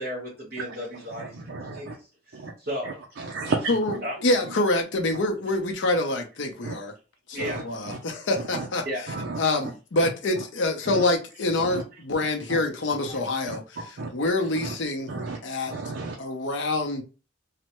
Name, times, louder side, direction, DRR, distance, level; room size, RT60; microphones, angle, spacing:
voice 1, 0.0-2.9 4.0-4.1 7.3-7.6 8.8-9.0, equal, 55° right, 1.2 m, -34 dB
voice 2, 0.9-2.0 2.3-2.5 2.8-4.0 4.4-4.5 6.6-6.7 7.4-8.0 8.5-8.7 9.1-9.4 10.4-10.5 10.9-11.0 11.6-11.8 12.5-12.6 13.1-13.2 13.5-13.6 14.0-14.1 14.6-14.7 15.1-15.4 15.7-16.2, right 3 dB, 75° right, 0.5 m, -33 dB
voice 3, 4.2-6.9 7.3-8.8 9.4-13.6 14.1-15.1 15.4-15.7 16.2-17.0, left 2 dB, 85° left, 0.7 m, -26 dB
3.2 x 2.1 x 3.0 m
head